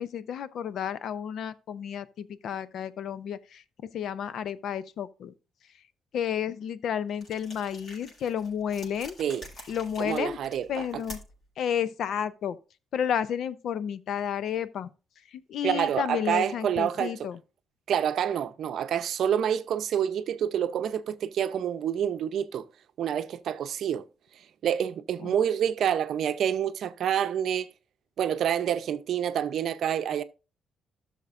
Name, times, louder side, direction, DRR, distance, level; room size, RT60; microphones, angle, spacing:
voice 1, 0.0-3.6 3.9-5.3 6.1-9.2 9.7-10.4 10.7-11.2 11.6-12.6 12.9-14.9 15.3-17.4 25.2-25.4, left 8 dB, 70° left, 0.6 m, -31 dB
sound 1, 7.2-11.5, left 1 dB, 50° left, 5.6 m, -47 dB
voice 2, 10.0-11.0 15.6-17.1 17.9-22.6 23.0-24.0 24.6-27.7 28.2-30.2, right 9 dB, 70° right, 0.6 m, -27 dB
13.0 x 6.5 x 2.5 m
cardioid pair, 90°, 0 cm